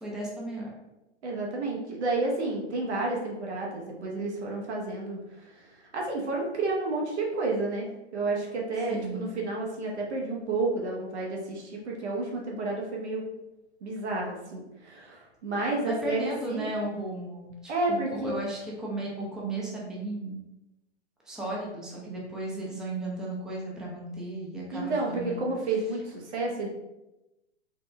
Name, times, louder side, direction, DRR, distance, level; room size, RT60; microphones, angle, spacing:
voice 1, 0.0-0.7 8.9-9.3 15.9-20.4 21.3-25.4, right 1 dB, ahead, -4 dB, 0.3 m, -35 dB
voice 2, 1.2-7.9 8.1-13.3 13.8-16.7 17.7-18.3 24.7-26.7, right 2 dB, 75° right, -1 dB, 1.0 m, -31 dB
4.0 x 2.1 x 3.3 m, 0.96 s
hypercardioid pair, 120°, 34 cm